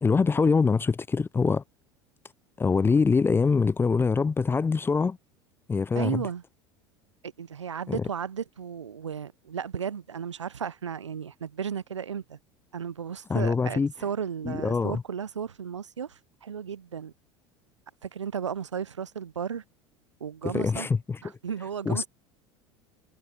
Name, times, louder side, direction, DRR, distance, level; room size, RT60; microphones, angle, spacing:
voice 1, 0.0-1.6 2.6-5.2 5.7-6.2 7.9-8.0 13.3-13.9 14.4-15.0 20.5-21.2 21.9-22.1, left 4 dB, 15° left, 0.4 m, -24 dB
voice 2, 5.9-6.4 7.2-12.4 12.7-17.1 18.0-19.6 20.2-20.9 21.2-22.1, right 7 dB, 85° right, 0.7 m, -34 dB
figure-of-eight pair, 75°, 15 cm